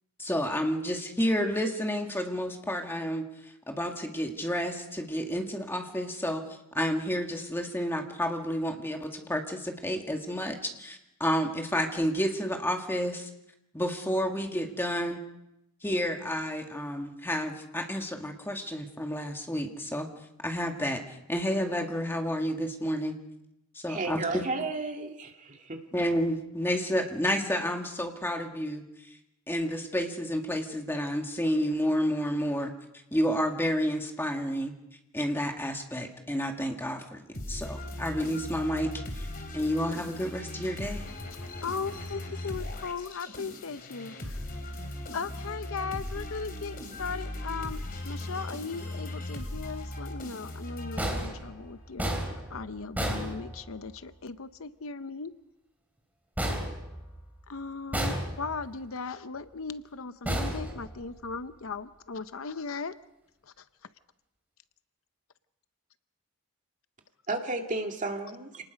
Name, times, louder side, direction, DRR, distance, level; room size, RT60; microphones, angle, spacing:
voice 1, 0.2-6.4 6.7-13.3 13.7-15.2 15.8-20.1 20.4-23.1 23.7-24.4 25.9-28.8 29.5-32.7 33.1-34.7 35.1-39.3 39.5-41.0, equal, 10° left, 3 dB, 2.0 m, -30 dB
voice 2, 23.9-25.8 67.3-68.6, right 3 dB, 35° right, 3 dB, 2.1 m, -33 dB
sound 1, 37.3-51.6, left 1 dB, 40° left, 3.3 m, -38 dB
voice 3, 41.6-44.5 45.1-55.3 57.5-63.0 63.4-63.6, left 4 dB, 65° left, 13 dB, 0.7 m, -38 dB
sound 2, 51.0-54.0 56.4-57.4 57.9-58.7 60.2-61.3, equal, 10° right, 3.1 m, -33 dB
27.5 x 19.5 x 5.2 m, 0.85 s
head